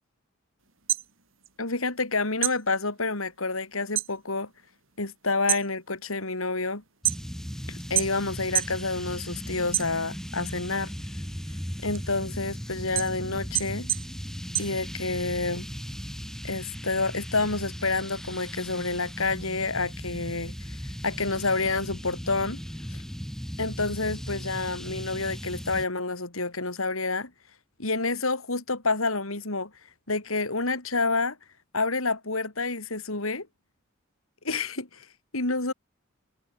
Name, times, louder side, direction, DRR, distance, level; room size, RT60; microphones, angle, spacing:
sound 1, 0.7-2.1 2.4-4.2 4.5-5.0 5.3-7.5 7.9-8.8 9.2-10.4 10.8-15.4, right 14 dB, 70° right, 6.1 m, -30 dB
voice 1, 1.6-4.5 5.0-6.8 7.7-10.9 11.8-13.9 14.6-15.7 16.4-20.5 21.0-22.6 23.6-27.3 27.8-29.7 30.1-31.4 31.7-33.5 34.4-35.1 35.3-35.7, left 3 dB, 85° left, 4.4 m, -28 dB
sound 2, 7.0-25.9, equal, ahead, 6.8 m, -37 dB
head